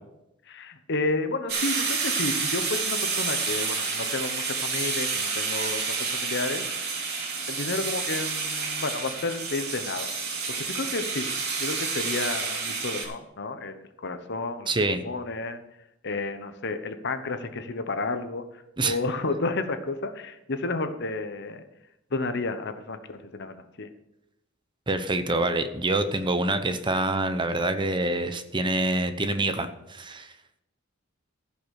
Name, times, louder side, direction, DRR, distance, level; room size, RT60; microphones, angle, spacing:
voice 1, 0.5-6.6 7.5-10.1 10.5-11.3 11.6-14.7 15.0-15.6 16.0-21.6 22.1-23.9, left 3 dB, 55° left, 9 dB, 1.0 m, -31 dB
sound 1, 1.5-13.1, right 4 dB, 50° right, 2.9 m, -29 dB
voice 2, 14.7-15.0 18.8-19.0 24.9-30.3, right 2 dB, 25° right, 9 dB, 0.8 m, -26 dB
15.0 x 5.9 x 6.5 m, 0.89 s
head